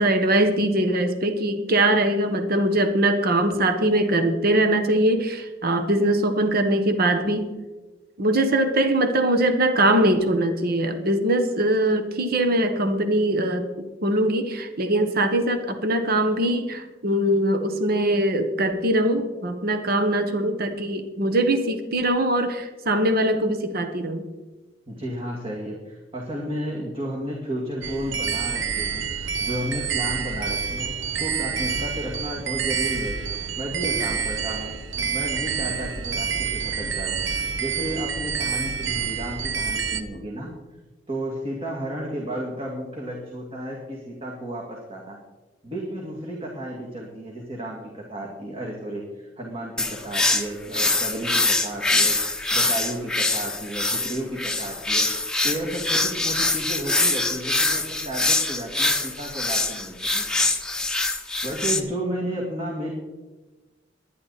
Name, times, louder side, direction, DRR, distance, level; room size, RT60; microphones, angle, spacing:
voice 1, 0.0-7.5 8.2-24.2, right 1 dB, 55° right, 8 dB, 1.3 m, -22 dB
voice 2, 24.9-33.2 33.6-40.5 41.1-45.2 45.6-52.2 52.5-60.3 61.4-62.9, right 1 dB, 30° right, -2 dB, 2.4 m, -33 dB
sound 1, 27.8-40.0, right 6 dB, 75° right, 1.1 m, -28 dB
sound 2, 49.8-61.8, left 2 dB, 5° left, 1.0 m, -24 dB
21.5 x 10.5 x 4.2 m, 1.2 s
head